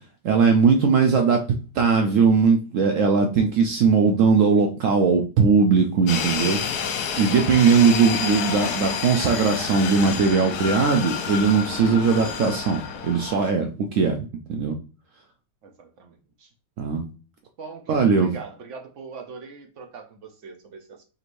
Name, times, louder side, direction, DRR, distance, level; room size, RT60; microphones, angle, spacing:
voice 1, 0.2-1.4 1.7-6.6 6.8-14.8 16.8-17.1 17.9-18.3, right 5 dB, 90° right, 4 dB, 0.6 m, -19 dB
sound 1, 6.1-13.5, left 7 dB, 70° left, 1.1 m, -29 dB
voice 2, 15.6-16.5 17.6-21.0, right 5 dB, 60° right, 4 dB, 0.8 m, -41 dB
5.2 x 3.1 x 2.5 m, 0.35 s
omnidirectional pair, 1.9 m